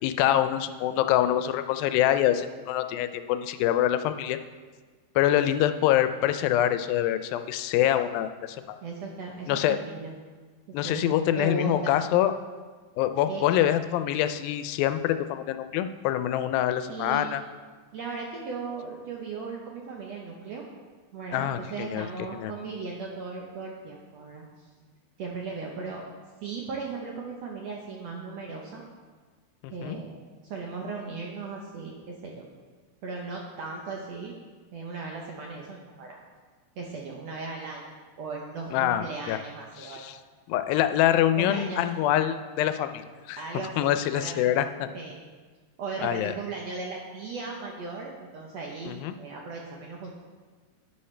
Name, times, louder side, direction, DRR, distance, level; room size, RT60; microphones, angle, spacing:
voice 1, 0.0-4.4 5.2-8.8 9.5-9.8 10.7-12.3 13.0-17.4 21.3-22.1 22.3-22.5 29.6-30.0 38.7-39.4 39.8-40.2 40.5-43.0 43.3-43.4 43.8-44.9 46.0-46.3 48.9-49.1, left 12 dB, 85° left, 10 dB, 2.3 m, -25 dB
voice 2, 8.8-10.2 10.8-12.0 13.3-13.5 16.9-17.3 17.9-20.6 21.1-24.7 25.2-26.1 26.4-28.8 29.7-30.2 30.4-32.4 33.0-34.3 34.7-36.2 36.8-37.8 38.2-40.1 41.4-42.2 43.4-44.4 44.9-45.2 45.8-50.2, right 4 dB, 70° right, -1 dB, 1.6 m, -37 dB
11.0 x 9.8 x 3.3 m, 1.4 s
omnidirectional pair, 4.1 m